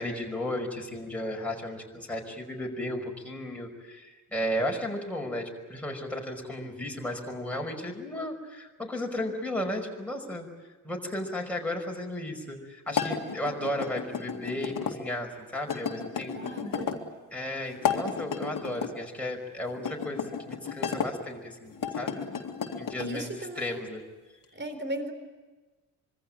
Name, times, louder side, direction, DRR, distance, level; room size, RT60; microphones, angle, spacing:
voice 1, 0.0-10.5 10.8-16.5 17.3-22.2 22.8-24.0, left 1 dB, 5° left, 0 dB, 5.4 m, -34 dB
sound 1, 12.9-15.0 15.7-17.0 17.7-18.9 19.8-21.1 21.7-23.1, left 6 dB, 45° left, 2.5 m, -32 dB
voice 2, 16.3-17.0 23.0-23.9 24.5-25.1, right 1 dB, 25° right, 9 dB, 4.1 m, -36 dB
25.5 x 23.0 x 8.8 m, 1.2 s
figure-of-eight pair, 40°, 47 cm